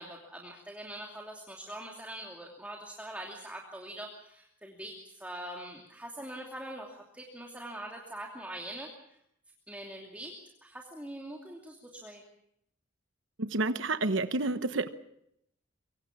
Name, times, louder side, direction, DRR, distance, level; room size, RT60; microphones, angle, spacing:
voice 1, 0.0-8.9 9.7-10.3 10.6-12.2, right 1 dB, 5° right, -1 dB, 2.8 m, -43 dB
voice 2, 13.4-14.9, right 3 dB, 70° right, 10 dB, 1.1 m, -29 dB
24.5 x 24.5 x 6.1 m, 0.76 s
head